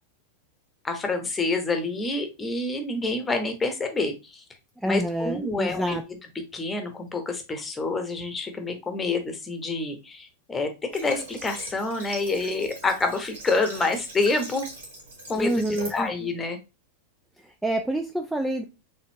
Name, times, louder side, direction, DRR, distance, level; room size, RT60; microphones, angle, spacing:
voice 1, 0.8-4.4 4.9-6.0 6.5-14.6 15.3-15.6 15.9-16.6, left 3 dB, 15° left, 6 dB, 1.0 m, -27 dB
voice 2, 4.8-6.0 15.4-16.1 17.4-18.6, right 1 dB, 5° right, 4 dB, 0.4 m, -27 dB
Water / Water tap faucet, 10.9-16.1, right 2 dB, 65° right, 2.1 m, -41 dB
4.3 x 3.5 x 2.8 m, 0.28 s
figure-of-eight pair, 90°, 0 cm